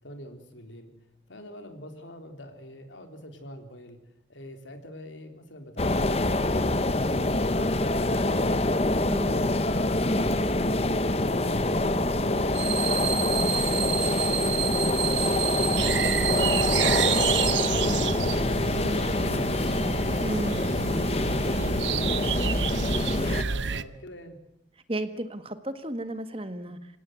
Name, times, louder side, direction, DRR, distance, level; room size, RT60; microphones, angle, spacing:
voice 1, 0.0-4.0 4.3-8.6 20.8-22.8 23.2-24.4, equal, 90° left, 6 dB, 3.7 m, -45 dB
sound 1, 5.8-23.4, left 2 dB, 35° left, 1.0 m, -25 dB
sound 2, 12.5-17.5, right 11 dB, 65° right, 1.7 m, -30 dB
sound 3, 15.8-23.8, right 6 dB, 80° right, 0.9 m, -30 dB
voice 2, 20.2-20.6 24.9-27.0, right 1 dB, 30° right, 10 dB, 1.6 m, -33 dB
27.0 x 17.5 x 9.5 m, 0.82 s
head